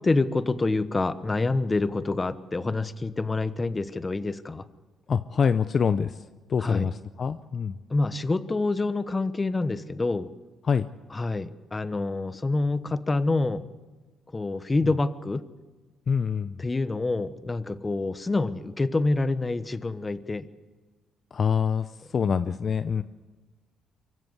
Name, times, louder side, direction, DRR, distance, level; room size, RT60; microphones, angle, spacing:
voice 1, 0.0-4.7 6.6-6.9 7.9-10.3 11.1-13.7 14.3-15.5 16.6-20.5, left 3 dB, 25° left, 14 dB, 1.1 m, -27 dB
voice 2, 5.1-6.2 6.5-7.8 10.6-10.9 16.1-16.6 21.3-23.0, left 6 dB, 45° left, 12 dB, 0.7 m, -25 dB
24.5 x 15.5 x 8.0 m, 1.3 s
cardioid pair, 90°, 0 cm